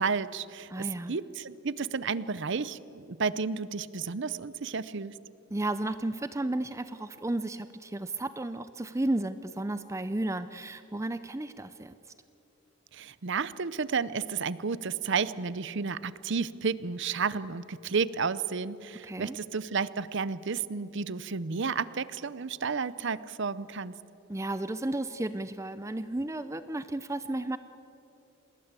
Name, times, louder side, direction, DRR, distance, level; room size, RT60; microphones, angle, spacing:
voice 1, 0.0-5.1 12.9-24.0, right 5 dB, 60° right, 17 dB, 0.7 m, -32 dB
voice 2, 0.7-1.2 5.5-12.0 19.0-19.4 24.3-27.6, right 1 dB, 15° right, 12 dB, 0.5 m, -33 dB
27.5 x 20.5 x 8.3 m, 2.9 s
head